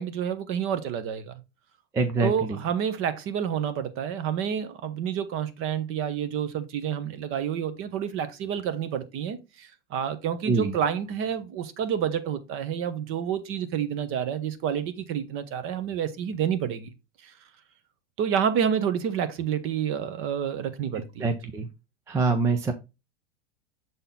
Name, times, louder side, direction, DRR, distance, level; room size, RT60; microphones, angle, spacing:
voice 1, 0.0-1.3 2.2-16.9 17.2-17.3 18.2-21.4, right 8 dB, 35° right, 1.0 m, -29 dB
voice 2, 1.9-2.6 10.5-10.7 21.2-21.7 22.1-22.7, right 4 dB, 10° right, 0.4 m, -25 dB
7.1 x 4.0 x 3.7 m
supercardioid pair, 140°, 36 cm